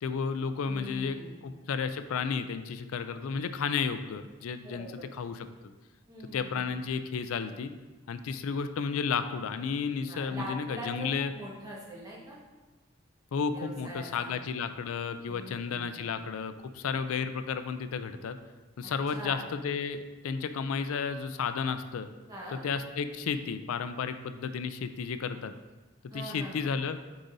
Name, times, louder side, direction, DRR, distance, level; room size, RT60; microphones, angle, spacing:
voice 1, 0.0-1.2 1.4-4.9 5.1-5.5 6.3-7.7 8.1-11.3 13.3-18.4 18.8-22.1 22.5-25.5 26.1-27.0, left 5 dB, 85° left, 10 dB, 0.4 m, -32 dB
voice 2, 0.7-1.4 4.6-5.1 6.1-6.7 10.1-11.1 11.3-12.4 13.5-14.3 15.3-16.0 18.8-19.4 22.3-22.6 26.1-26.7, equal, 20° right, -5 dB, 1.4 m, -43 dB
7.8 x 4.9 x 2.7 m, 1.2 s
head